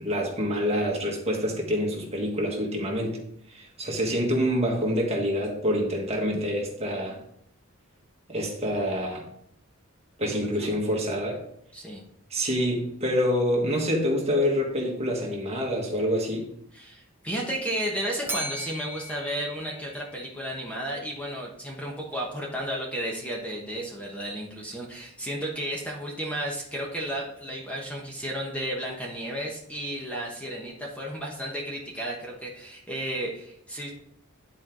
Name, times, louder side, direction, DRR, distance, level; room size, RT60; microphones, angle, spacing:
voice 1, 0.0-3.2 3.5-7.2 8.3-9.2 10.2-11.4 12.3-16.5, equal, 30° right, 0 dB, 1.6 m, -26 dB
voice 2, 10.2-10.7 11.7-12.0 16.7-33.9, right 1 dB, 5° left, -2 dB, 1.1 m, -33 dB
Bell, 18.3-20.5, right 1 dB, 10° right, 0.7 m, -37 dB
10.5 x 4.6 x 3.8 m, 0.70 s
head